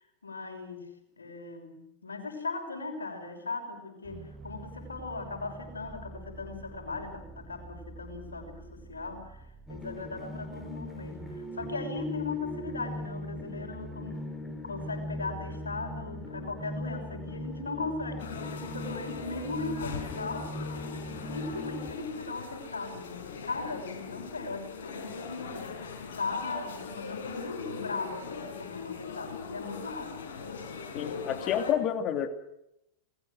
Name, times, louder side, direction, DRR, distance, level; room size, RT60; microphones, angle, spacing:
voice 1, 0.0-14.3 14.6-20.5 21.0-30.2, left 3 dB, 75° left, 5 dB, 5.8 m, -38 dB
sound 1, 4.0-11.2, right 3 dB, 20° right, 1.8 m, -48 dB
sound 2, 9.7-21.9, left 1 dB, 5° left, 4.8 m, -39 dB
sound 3, 18.2-31.7, left 5 dB, 60° left, 5.3 m, -40 dB
voice 2, 30.9-32.3, left 9 dB, 35° left, 8 dB, 2.7 m, -29 dB
29.0 x 21.0 x 6.3 m, 0.83 s
figure-of-eight pair, 90°, 0 cm